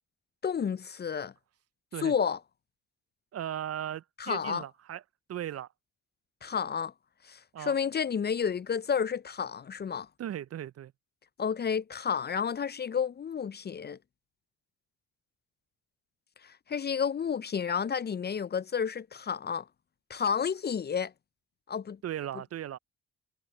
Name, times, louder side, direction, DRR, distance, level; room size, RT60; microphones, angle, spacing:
voice 1, 0.4-1.3 2.0-2.4 4.2-4.6 6.4-6.9 7.2-10.1 11.4-14.0 16.4-19.6 20.1-21.1 21.7-22.0, left 7 dB, 30° left, 0.5 m, -31 dB
voice 2, 3.3-5.0 5.3-5.7 7.5-7.8 10.2-10.9 22.0-22.8, right 11 dB, 50° right, 0.5 m, -37 dB
supercardioid pair, 55°, 33 cm